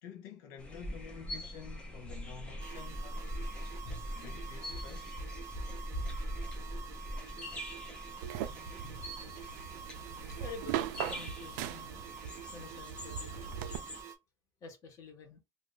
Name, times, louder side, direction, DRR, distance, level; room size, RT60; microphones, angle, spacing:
voice 1, 0.0-3.3 4.1-5.2, left 7 dB, 80° left, 0.6 m, -50 dB
sound 1, 0.6-14.0, equal, 10° left, 0.6 m, -42 dB
sound 2, 2.6-14.2, right 7 dB, 30° right, 0.7 m, -48 dB
sound 3, 8.2-13.8, right 10 dB, 85° right, 0.4 m, -40 dB
voice 2, 10.3-12.1 12.5-13.8 14.6-15.4, left 4 dB, 30° left, 0.9 m, -49 dB
2.5 x 2.4 x 3.7 m
cardioid pair, 180°, 10 cm